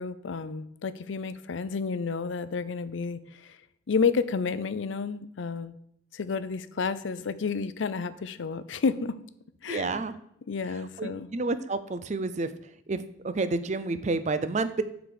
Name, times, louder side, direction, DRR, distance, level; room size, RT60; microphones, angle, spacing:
voice 1, 0.0-3.6 3.9-5.8 6.1-9.1 9.6-10.0 10.5-11.3, left 5 dB, 85° left, 14 dB, 0.5 m, -30 dB
voice 2, 9.7-10.1 11.0-12.5 12.9-14.8, right 3 dB, 40° right, 12 dB, 0.5 m, -29 dB
7.8 x 4.0 x 6.7 m, 0.76 s
head